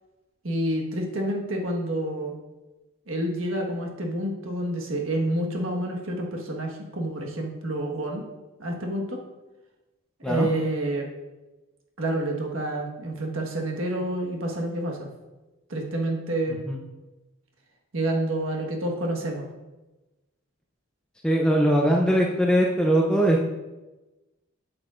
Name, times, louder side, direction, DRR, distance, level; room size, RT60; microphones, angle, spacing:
voice 1, 0.4-2.3 3.1-8.2 8.6-9.2 10.2-11.1 12.0-15.1 15.7-16.6 17.9-19.5, right 1 dB, 65° right, 1 dB, 1.4 m, -28 dB
voice 2, 21.2-23.5, equal, 5° left, -1 dB, 0.5 m, -21 dB
8.1 x 7.9 x 2.5 m, 1.1 s
head